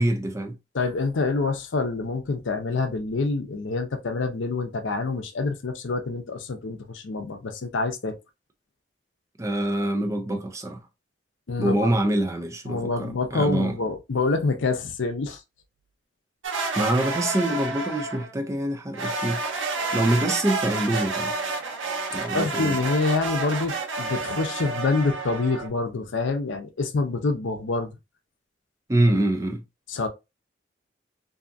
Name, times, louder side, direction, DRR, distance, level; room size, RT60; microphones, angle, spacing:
voice 1, 0.0-0.6 9.4-10.8 11.6-13.8 16.8-19.4 19.8-21.3 22.1-22.8 28.9-29.6, right 1 dB, 15° right, 0.4 m, -25 dB
voice 2, 0.7-8.2 11.5-11.8 12.7-15.4 22.3-27.9 29.9-30.1, left 3 dB, 80° left, 0.5 m, -26 dB
sound 1, 16.4-18.3 18.9-25.7, right 3 dB, 90° right, 0.7 m, -30 dB
2.6 x 2.4 x 2.5 m
head